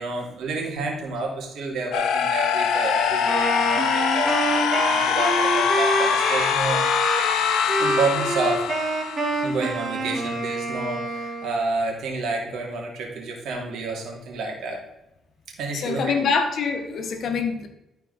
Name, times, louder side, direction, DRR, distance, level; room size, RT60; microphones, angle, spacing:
voice 1, 0.0-7.1 7.8-8.7 9.4-14.8 15.6-16.1, right 3 dB, 75° right, 0 dB, 2.5 m, -29 dB
sound 1, 1.9-9.8, left 8 dB, 80° left, 0.7 m, -23 dB
Wind instrument woodwind instrument, 3.3-11.7, right 3 dB, 40° right, 1.9 m, -27 dB
voice 2, 15.8-17.7, left 5 dB, 65° left, 6 dB, 1.2 m, -25 dB
12.0 x 4.7 x 4.0 m, 0.89 s
cardioid pair, 90°, 0 cm